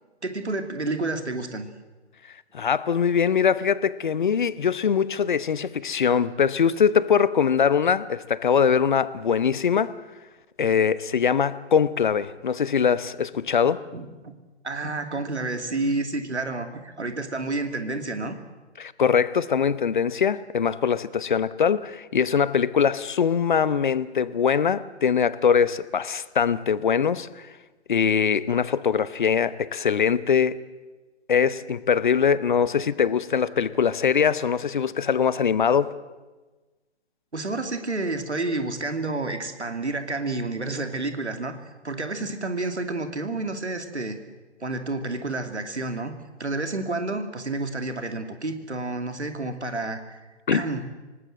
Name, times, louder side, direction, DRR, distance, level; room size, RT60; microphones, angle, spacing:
voice 1, 0.2-1.7 13.6-14.3 14.6-18.4 37.3-41.6 41.8-44.2 44.6-50.2 50.5-50.9, right 2 dB, 75° right, 2.8 m, -30 dB
voice 2, 2.5-9.9 10.6-13.8 18.8-27.3 27.9-30.6 31.3-35.9 50.5-50.6, left 7 dB, 45° left, 0.9 m, -22 dB
25.5 x 19.0 x 7.7 m
figure-of-eight pair, 135°, 35 cm